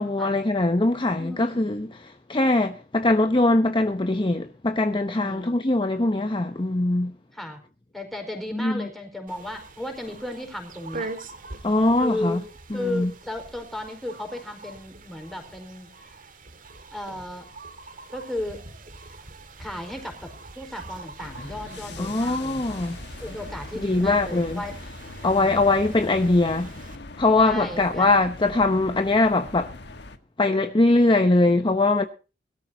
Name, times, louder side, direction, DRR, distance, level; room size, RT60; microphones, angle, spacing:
voice 1, 0.0-7.1 8.5-8.9 11.6-12.4 12.7-13.1 22.0-23.0 23.7-24.6 25.2-26.8 27.2-29.7 30.4-32.1, left 2 dB, 25° left, 0.9 m, -22 dB
voice 2, 1.2-1.7 5.1-5.5 7.3-7.6 7.9-11.1 12.0-12.4 12.7-15.9 16.9-17.4 18.1-18.6 19.6-22.6 23.2-24.8 25.2-25.6 27.4-28.1, left 1 dB, ahead, 4.6 m, -34 dB
sound 1, 9.3-27.0, right 3 dB, 50° right, 2.1 m, -43 dB
sound 2, 21.2-30.2, left 2 dB, 65° left, 1.5 m, -41 dB
21.0 x 13.5 x 2.8 m
head